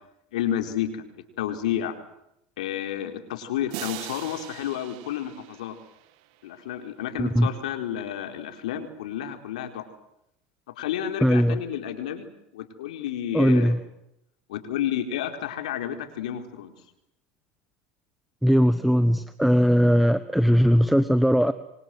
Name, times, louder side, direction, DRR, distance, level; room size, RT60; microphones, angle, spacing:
voice 1, 0.3-1.1 1.4-1.9 2.6-5.7 6.4-9.9 10.8-12.3 12.5-13.8 14.5-16.7, left 10 dB, 80° left, 6 dB, 4.4 m, -31 dB
sound 1, 3.7-6.5, right 16 dB, 65° right, 2.3 m, -41 dB
voice 2, 11.2-11.6 13.3-13.8 18.4-21.5, equal, ahead, 12 dB, 1.3 m, -19 dB
28.0 x 25.0 x 7.9 m, 0.81 s
supercardioid pair, 110°, 4 cm